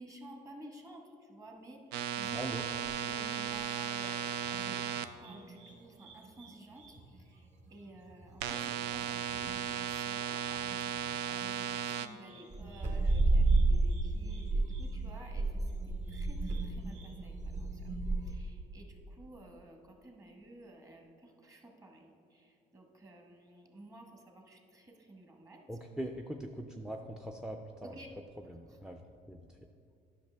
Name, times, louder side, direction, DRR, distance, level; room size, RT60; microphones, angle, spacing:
voice 1, 0.0-1.8 2.2-6.8 7.3-7.4 7.7-10.6 10.9-15.5 16.1-17.7 18.2-25.6 27.8-28.1, right 1 dB, 20° right, 1 dB, 1.2 m, -53 dB
sound 1, 1.9-5.1 8.4-12.1, right 9 dB, 85° right, 0.4 m, -36 dB
sound 2, 2.2-5.7 6.0-9.7 10.0-18.3, right 2 dB, 45° right, 1.2 m, -33 dB
voice 2, 2.3-2.7 25.7-28.0 28.4-29.0 29.3-29.4, right 1 dB, 5° right, 4 dB, 0.4 m, -41 dB
10.5 x 6.0 x 3.3 m, 2.4 s
cardioid pair, 110°, 17 cm